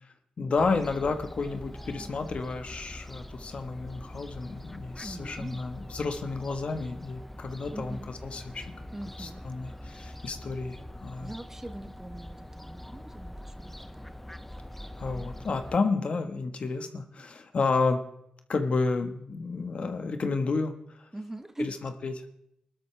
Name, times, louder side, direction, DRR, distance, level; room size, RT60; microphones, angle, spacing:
voice 1, 0.4-8.7 9.2-11.3 15.0-18.0 18.5-20.7 21.6-22.1, left 4 dB, 60° left, 7 dB, 1.4 m, -31 dB
Fowl, 0.6-15.8, left 1 dB, 10° left, 0.7 m, -44 dB
voice 2, 5.0-5.6 7.7-8.1 8.9-9.4 11.2-14.1 21.1-21.7, right 1 dB, 15° right, 9 dB, 1.1 m, -41 dB
20.5 x 12.5 x 3.4 m, 0.77 s
cardioid pair, 70°, 2 cm